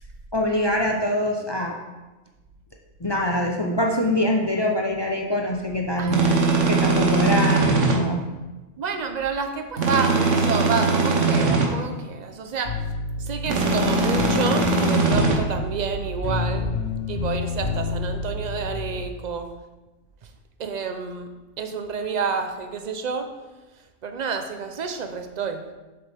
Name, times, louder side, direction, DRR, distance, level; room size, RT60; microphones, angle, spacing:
voice 1, 0.3-1.8 3.0-6.2 6.7-8.3, left 1 dB, 25° left, 0 dB, 0.6 m, -24 dB
voice 2, 6.0-6.3 8.8-12.8 13.2-16.7 17.1-19.5 20.6-23.3 24.0-25.7, right 5 dB, 45° right, 7 dB, 0.6 m, -29 dB
sound 1, 6.1-8.0 9.8-11.7 13.5-15.4, right 3 dB, 70° right, 1.4 m, -20 dB
sound 2, 12.6-19.1, left 3 dB, 80° left, 1.4 m, -29 dB
7.6 x 6.8 x 3.5 m, 1.1 s
omnidirectional pair, 1.3 m